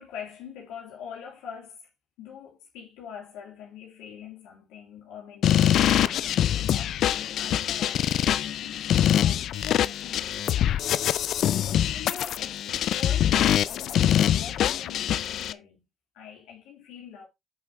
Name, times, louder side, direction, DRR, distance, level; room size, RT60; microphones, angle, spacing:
voice 1, 0.0-1.9 2.2-11.1 11.6-15.9 16.1-17.3, left 8 dB, 85° left, 2.7 m, -44 dB
sound 1, 5.4-15.5, left 11 dB, 70° left, 0.5 m, -24 dB
8.3 x 5.4 x 3.6 m
supercardioid pair, 65°, 0 cm